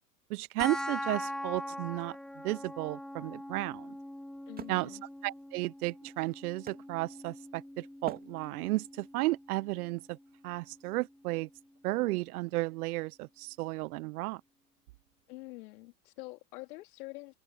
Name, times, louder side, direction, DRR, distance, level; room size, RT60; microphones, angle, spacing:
voice 1, 0.3-2.2 2.4-3.9 4.7-4.9 5.2-10.2 10.4-11.5 11.8-14.4, right 20 dB, 65° right, 0.6 m, -33 dB
sound 1, 0.6-11.6, left 1 dB, ahead, 0.8 m, -43 dB
Wood, 3.1-7.5 8.0-8.9, right 6 dB, 20° right, 2.1 m, -49 dB
voice 2, 4.5-5.0 15.3-17.4, left 21 dB, 65° left, 3.2 m, -46 dB
hypercardioid pair, 115°, 48 cm